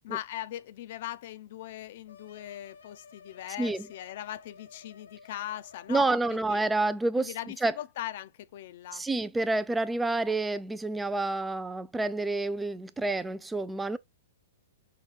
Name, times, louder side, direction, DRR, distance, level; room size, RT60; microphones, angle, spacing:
voice 1, 0.0-6.6 7.2-9.0, left 13 dB, 55° left, 0.5 m, -40 dB
sound 1, 2.1-6.5, left 5 dB, 80° left, 1.0 m, -54 dB
voice 2, 5.9-7.3 7.6-7.7 8.9-14.0, right 2 dB, 10° right, 0.3 m, -28 dB
5.7 x 2.3 x 3.3 m
hypercardioid pair, 125°, 0 cm